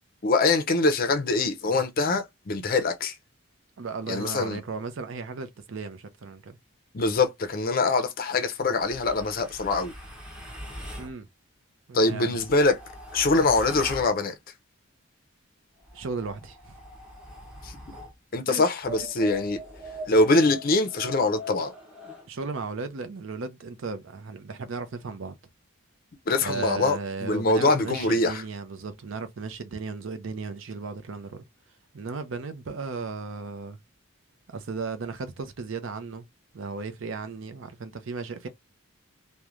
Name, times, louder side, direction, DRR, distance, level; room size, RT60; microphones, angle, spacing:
voice 1, 0.2-3.1 4.1-4.6 6.9-9.9 11.9-12.8 13.1-14.3 17.6-17.8 18.3-19.6 20.1-21.7 26.3-28.4, left 3 dB, 40° left, 0.5 m, -23 dB
voice 2, 3.8-6.6 11.0-11.3 11.9-12.4 15.9-16.7 18.5-18.7 19.0-19.1 22.3-25.3 26.4-31.4 31.9-33.8 34.5-36.3 36.5-38.5, right 4 dB, 65° right, 0.5 m, -35 dB
sound 1, 8.8-11.1 12.1-14.1 15.8-18.1 18.8-22.3, equal, 5° right, 0.7 m, -42 dB
3.1 x 2.1 x 2.4 m
head